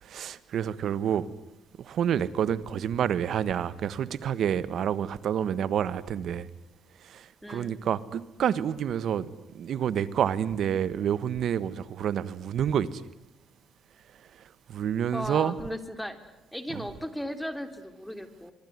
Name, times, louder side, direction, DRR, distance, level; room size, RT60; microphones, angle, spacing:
voice 1, 0.0-1.3 1.8-6.5 7.0-9.3 9.5-13.0 14.7-15.6 16.7-16.8, right 9 dB, 70° right, 1.5 m, -28 dB
voice 2, 7.4-7.8 15.1-16.2 16.5-18.5, equal, 5° left, 3.5 m, -36 dB
24.5 x 24.5 x 9.6 m
cardioid pair, 90°, 0 cm